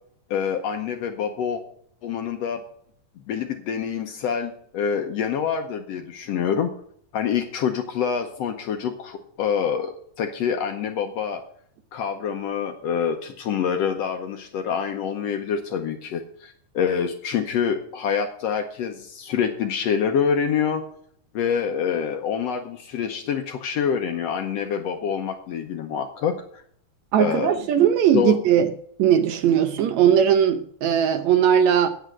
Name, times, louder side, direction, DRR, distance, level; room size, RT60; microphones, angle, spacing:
voice 1, 0.3-1.6 2.0-2.6 3.3-6.7 7.1-11.4 11.9-20.8 21.3-26.6 27.2-27.5 28.1-28.4, left 7 dB, 70° left, 5 dB, 1.7 m, -26 dB
voice 2, 27.1-28.7 29.0-31.9, right 9 dB, 70° right, 9 dB, 1.9 m, -19 dB
9.2 x 8.0 x 6.3 m, 0.62 s
omnidirectional pair, 3.6 m